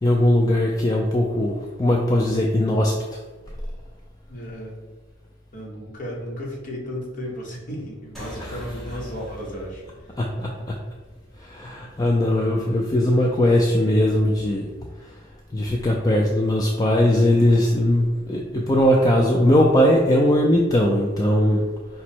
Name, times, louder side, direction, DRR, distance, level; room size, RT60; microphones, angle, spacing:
voice 1, 0.0-3.2 8.4-8.6 10.2-10.7 11.4-14.7 15.1-15.2 15.5-21.6, left 1 dB, 20° left, -1 dB, 0.3 m, -20 dB
voice 2, 4.3-4.8 5.5-9.8, equal, 40° left, -2 dB, 1.0 m, -34 dB
sound 1, 8.1-13.0, equal, ahead, 0.8 m, -41 dB
5.2 x 2.0 x 4.4 m, 1.3 s
head